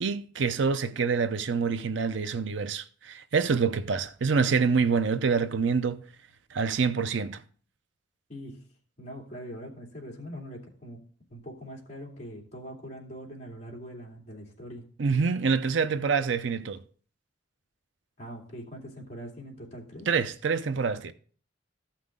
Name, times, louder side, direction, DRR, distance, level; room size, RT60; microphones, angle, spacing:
voice 1, 0.0-6.0 6.5-7.4 15.0-16.8 20.1-21.1, right 5 dB, 70° right, 0.6 m, -26 dB
voice 2, 8.3-8.6 9.0-11.0 11.3-14.8 18.2-20.1, equal, 35° left, 2.7 m, -42 dB
14.0 x 5.8 x 3.6 m
head